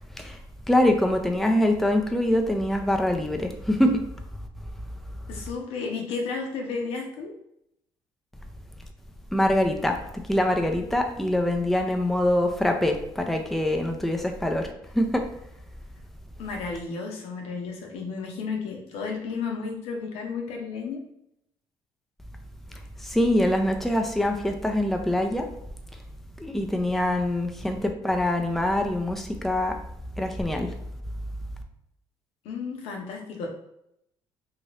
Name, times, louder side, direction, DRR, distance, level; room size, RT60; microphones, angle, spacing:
voice 1, 0.7-4.0 9.3-15.3 23.0-25.5 26.4-29.8 30.2-30.7, left 1 dB, ahead, 4 dB, 0.5 m, -24 dB
voice 2, 5.3-7.3 16.4-21.0 32.4-33.5, left 4 dB, 80° left, 2 dB, 0.7 m, -33 dB
2.8 x 2.6 x 3.2 m, 0.78 s
supercardioid pair, 80°, 10 cm